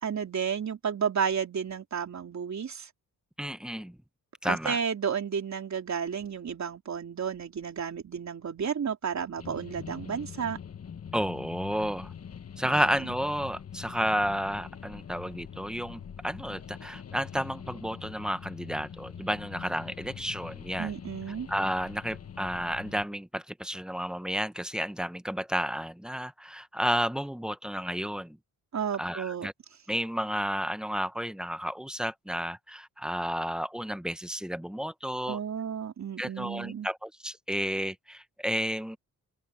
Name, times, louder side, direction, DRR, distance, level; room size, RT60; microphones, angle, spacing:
voice 1, 0.0-2.9 4.4-10.6 12.6-13.1 20.8-21.5 28.7-29.5 35.3-36.9, right 7 dB, 50° right, 3.7 m, -32 dB
voice 2, 3.4-4.0 4.4-4.8 11.1-12.1 12.6-20.9 21.5-28.4 29.0-29.5 29.9-35.4 36.2-39.0, equal, ahead, 0.9 m, -32 dB
sound 1, 9.4-23.1, left 8 dB, 40° left, 1.4 m, -44 dB
open air
cardioid pair, 90°, 36 cm